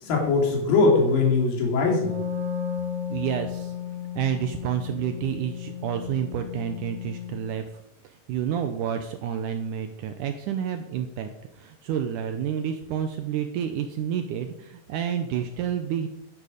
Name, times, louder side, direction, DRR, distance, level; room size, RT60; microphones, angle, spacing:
voice 1, 0.0-2.2, left 3 dB, 80° left, -1 dB, 4.3 m, -21 dB
Wind instrument woodwind instrument, 1.9-7.6, left 8 dB, 35° right, 3.1 m, -34 dB
voice 2, 3.1-3.7 4.2-16.1, right 9 dB, 75° right, 7 dB, 2.0 m, -29 dB
11.5 x 10.5 x 5.1 m, 0.83 s
omnidirectional pair, 4.1 m